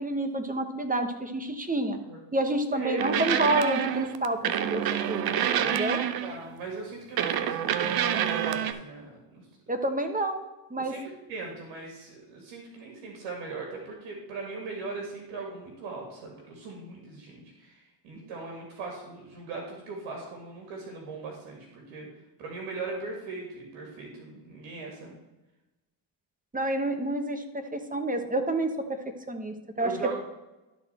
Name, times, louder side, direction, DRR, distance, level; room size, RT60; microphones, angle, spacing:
voice 1, 0.0-2.0 2.3-5.4 5.6-6.0 9.7-10.9 26.5-28.7 29.3-29.9, right 1 dB, 15° right, 7 dB, 1.1 m, -29 dB
voice 2, 2.7-3.2 6.2-9.5 10.8-22.1 22.4-25.2 29.8-30.2, right 3 dB, 85° right, 0 dB, 2.1 m, -39 dB
sound 1, 3.0-6.5 7.2-8.7, right 9 dB, 50° right, 0.7 m, -27 dB
12.0 x 4.3 x 4.3 m, 1.0 s
supercardioid pair, 80°, 47 cm